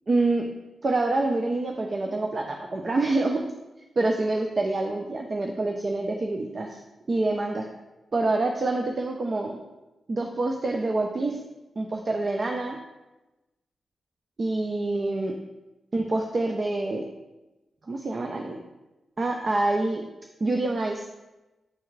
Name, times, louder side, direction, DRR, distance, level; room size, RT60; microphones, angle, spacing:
voice 1, 0.1-0.5 0.8-3.4 4.0-6.8 7.1-7.7 8.1-9.6 10.1-11.4 11.8-12.8 14.4-15.3 15.9-17.1 17.9-18.6 19.2-20.0 20.4-21.0, right 2 dB, 40° right, 2 dB, 0.6 m, -26 dB
9.5 x 3.4 x 3.2 m, 1.0 s
cardioid pair, 90°, 0 cm